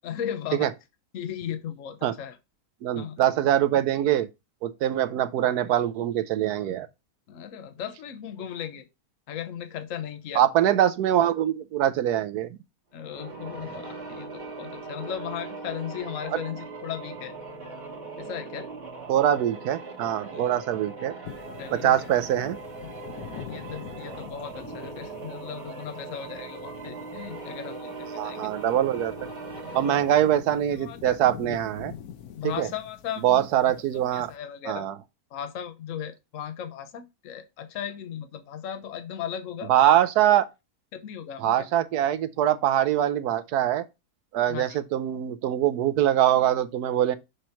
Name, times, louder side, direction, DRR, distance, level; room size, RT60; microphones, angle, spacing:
voice 1, 0.0-0.7 1.1-2.4 2.9-3.2 7.3-8.9 9.3-10.4 12.9-17.3 18.2-18.7 20.3-20.5 21.6-22.1 23.3-28.6 29.9-30.0 30.7-31.1 32.3-33.4 34.1-34.9 35.3-39.9 40.9-41.7 44.5-44.8, left 9 dB, 60° left, 1.1 m, -37 dB
voice 2, 2.8-4.3 4.6-6.9 10.3-12.5 16.3-16.4 19.1-21.1 21.7-22.6 28.2-29.1 29.7-31.9 32.6-32.7 33.2-34.3 34.7-34.9 39.7-40.4 41.4-43.8 44.3-47.2, right 11 dB, 85° right, 1.2 m, -23 dB
sound 1, 13.0-30.5, right 3 dB, 40° right, 1.7 m, -40 dB
sound 2, 21.2-34.4, left 9 dB, 80° left, 1.3 m, -45 dB
6.5 x 3.1 x 5.6 m
omnidirectional pair, 1.6 m